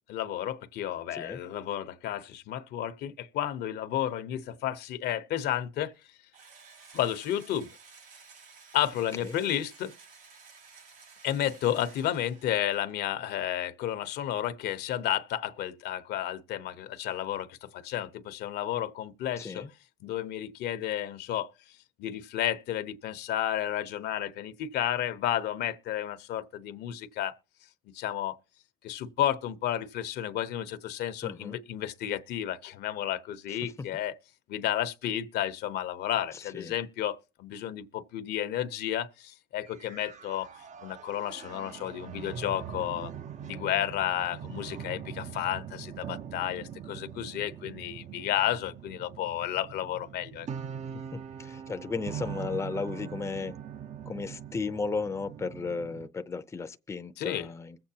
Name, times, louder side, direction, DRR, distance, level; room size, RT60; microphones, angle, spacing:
voice 1, 0.1-5.9 6.9-7.7 8.7-9.9 11.2-19.7 20.0-21.5 22.0-27.4 27.9-28.4 28.8-34.1 34.5-40.5 40.8-43.1 43.4-50.5 57.2-57.5, left 11 dB, 75° left, 0.9 m, -32 dB
Engine / Drill, 6.3-12.9, right 5 dB, 70° right, 5.9 m, -53 dB
voice 2, 19.4-19.7 31.2-31.6 33.5-33.9 36.5-36.7 51.1-53.6 54.1-57.8, left 4 dB, 15° left, 0.6 m, -35 dB
sound 1, 39.7-56.1, right 8 dB, 45° right, 0.7 m, -42 dB
22.0 x 7.8 x 2.8 m
cardioid pair, 110°, 17 cm